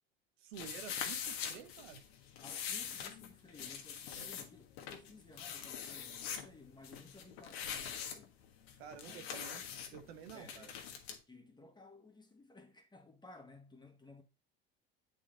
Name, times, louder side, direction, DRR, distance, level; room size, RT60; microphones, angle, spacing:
voice 1, 0.4-2.0 4.1-4.3 8.8-9.6 9.9-10.7, right 8 dB, 80° right, 1.2 m, -50 dB
sound 1, 0.5-11.2, left 8 dB, 80° left, 1.4 m, -44 dB
voice 2, 2.4-8.4 9.0-9.3 10.3-10.7 11.3-14.2, left 3 dB, 15° left, 1.7 m, -57 dB
8.0 x 4.3 x 3.9 m
hypercardioid pair, 80°, 31 cm